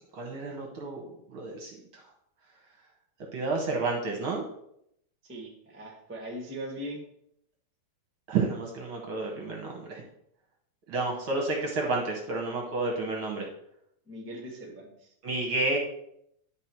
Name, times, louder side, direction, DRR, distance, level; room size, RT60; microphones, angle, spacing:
voice 1, 0.0-2.0 3.3-4.4 8.3-10.0 10.9-13.5 15.2-15.8, right 3 dB, 60° right, 1 dB, 1.5 m, -31 dB
voice 2, 5.2-7.0 14.1-15.1, equal, 10° right, 0 dB, 0.5 m, -40 dB
11.0 x 4.0 x 4.5 m, 0.73 s
omnidirectional pair, 3.4 m